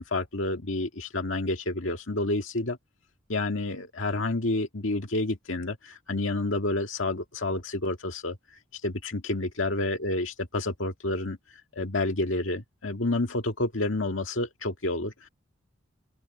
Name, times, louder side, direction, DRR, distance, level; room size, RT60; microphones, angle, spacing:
voice 1, 0.0-2.8 3.3-8.4 8.7-15.3, left 2 dB, 70° left, 2.0 m, -29 dB
open air
head